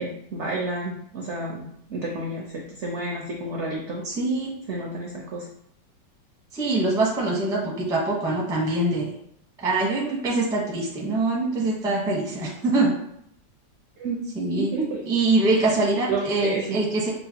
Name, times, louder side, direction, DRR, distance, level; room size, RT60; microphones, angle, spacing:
voice 1, 0.0-4.0 4.7-5.5 14.0-14.2 14.6-15.2 16.1-16.8, right 2 dB, 70° right, -2 dB, 0.6 m, -30 dB
voice 2, 4.0-4.5 6.5-9.1 9.6-12.9 14.3-14.7 15.1-17.1, right 2 dB, 5° right, -4 dB, 0.4 m, -24 dB
5.7 x 2.4 x 2.8 m, 0.72 s
omnidirectional pair, 2.0 m